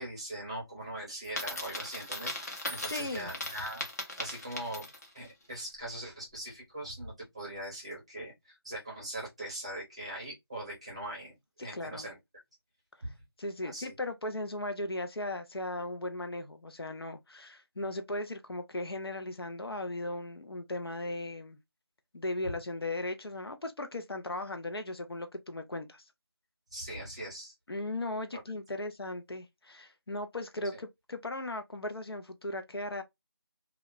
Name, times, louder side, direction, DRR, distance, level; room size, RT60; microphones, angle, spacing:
voice 1, 0.0-3.8 4.2-4.9 5.1-12.2 13.0-13.1 13.6-13.9 26.7-27.5 28.3-28.4, right 1 dB, 15° right, 0.7 m, -41 dB
Coin (dropping), 1.2-5.2, left 1 dB, 40° left, 0.8 m, -38 dB
voice 2, 2.9-3.3 11.7-12.1 13.4-21.6 22.1-26.0 27.7-33.0, left 2 dB, 70° left, 0.6 m, -37 dB
2.3 x 2.1 x 3.6 m
figure-of-eight pair, 175°, 13 cm